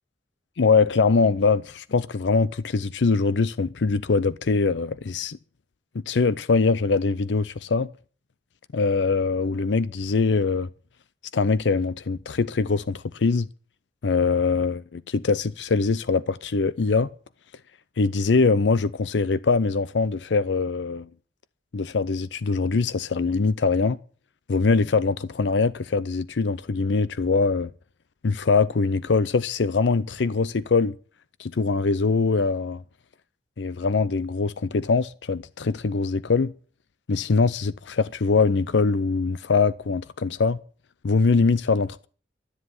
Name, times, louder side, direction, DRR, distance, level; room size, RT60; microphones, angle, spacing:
voice 1, 0.6-5.4 5.9-7.9 8.7-10.7 11.3-13.5 14.0-17.1 18.0-21.1 21.7-24.0 24.5-27.7 28.2-30.9 31.4-32.8 33.6-36.5 37.1-40.6 41.0-42.1, left 4 dB, 90° left, 0.5 m, -23 dB
13.0 x 7.6 x 9.5 m
head